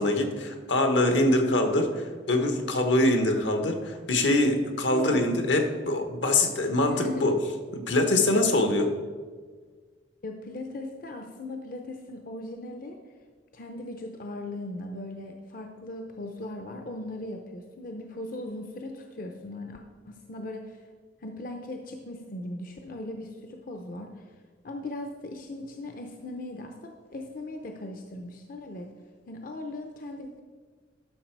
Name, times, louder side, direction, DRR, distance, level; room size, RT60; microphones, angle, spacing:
voice 1, 0.0-7.3 7.7-8.9, left 1 dB, 80° left, 5 dB, 1.1 m, -24 dB
voice 2, 4.9-5.3 6.9-7.3 10.2-13.0 13.5-20.8 21.2-24.2 24.6-28.9 29.3-30.4, left 2 dB, 50° left, 4 dB, 0.6 m, -38 dB
11.5 x 5.8 x 4.6 m, 1.5 s
head